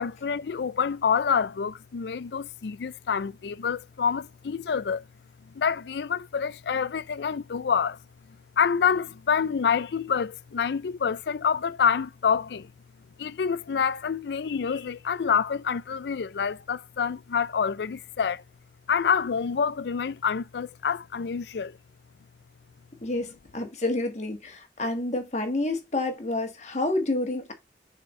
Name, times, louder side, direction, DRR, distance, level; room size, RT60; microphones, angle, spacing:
voice 1, 0.0-5.0 5.5-8.0 8.6-12.7 13.2-18.4 18.9-21.8, left 6 dB, 70° left, 0.4 m, -27 dB
voice 2, 23.0-27.5, left 2 dB, 40° left, 1.5 m, -29 dB
6.8 x 4.4 x 3.2 m
head